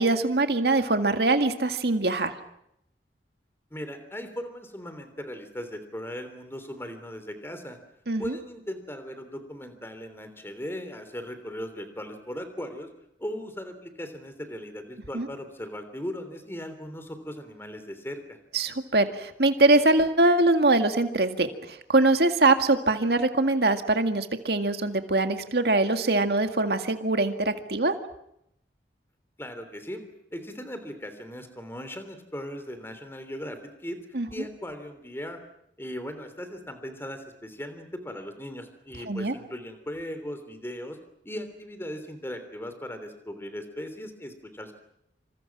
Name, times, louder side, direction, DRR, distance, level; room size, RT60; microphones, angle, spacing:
voice 1, 0.0-2.4 8.1-8.2 15.1-15.3 18.5-21.5 21.9-28.0 34.1-34.3 39.1-39.3, right 2 dB, 65° right, 7 dB, 2.0 m, -23 dB
voice 2, 3.7-7.8 8.2-12.9 13.2-18.4 29.4-30.0 30.3-33.6 33.8-34.0 34.3-35.4 35.8-41.0 41.2-44.7, equal, 15° left, 9 dB, 3.3 m, -38 dB
28.0 x 26.0 x 6.1 m, 0.77 s
head